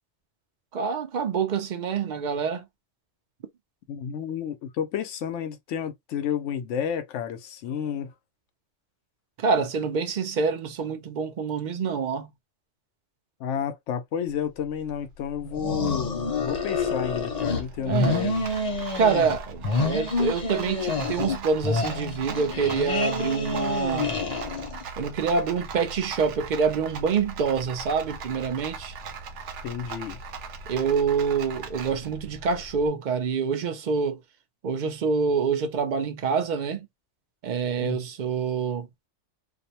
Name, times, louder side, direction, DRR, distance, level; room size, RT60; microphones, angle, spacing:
voice 1, 0.7-2.6 9.4-12.3 15.4-15.5 17.8-18.3 19.0-24.1 25.0-28.9 30.7-34.2 34.6-36.9 37.4-38.9, right 5 dB, 55° right, 0.6 m, -26 dB
voice 2, 3.9-8.1 13.4-18.5 29.6-30.2 37.8-38.0, left 8 dB, 90° left, 0.9 m, -31 dB
Rattle, 14.3-32.9, right 4 dB, 80° right, 0.9 m, -40 dB
sound 1, 15.5-17.6 17.9-19.4 19.6-21.4 21.6-24.8, left 3 dB, 40° left, 0.8 m, -28 dB
2.6 x 2.1 x 2.7 m
omnidirectional pair, 1.2 m